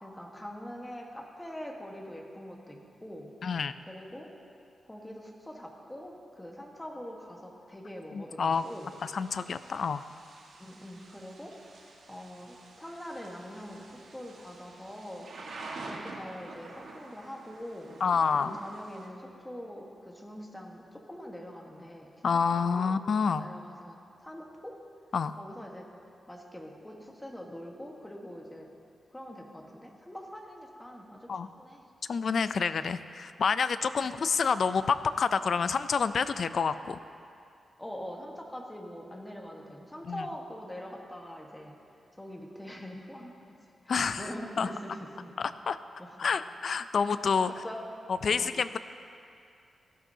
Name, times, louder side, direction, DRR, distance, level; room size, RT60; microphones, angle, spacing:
voice 1, 0.0-3.3 3.9-4.3 4.9-8.9 10.6-11.5 12.1-15.3 15.8-17.9 18.3-22.1 22.5-23.0 23.4-24.7 25.4-25.8 26.3-28.7 29.1-31.8 34.0-34.1 37.8-41.8 42.2-43.6 43.8-45.3 46.0-46.3 47.5-47.8 48.3-48.5, equal, 10° left, 0 dB, 1.3 m, -43 dB
voice 2, 3.4-3.7 8.1-8.6 9.0-10.0 18.0-18.6 22.2-23.4 25.1-25.4 31.3-31.5 32.1-37.0 40.0-40.3 43.9-44.3 44.6-44.7 45.4-45.8 46.2-47.6 48.2-48.8, left 5 dB, 55° left, 12 dB, 0.3 m, -28 dB
Thunder / Rain, 8.5-19.1, right 3 dB, 85° right, 1.4 m, -48 dB
17.0 x 12.5 x 2.7 m, 2.5 s
wide cardioid pair, 155°, 0 cm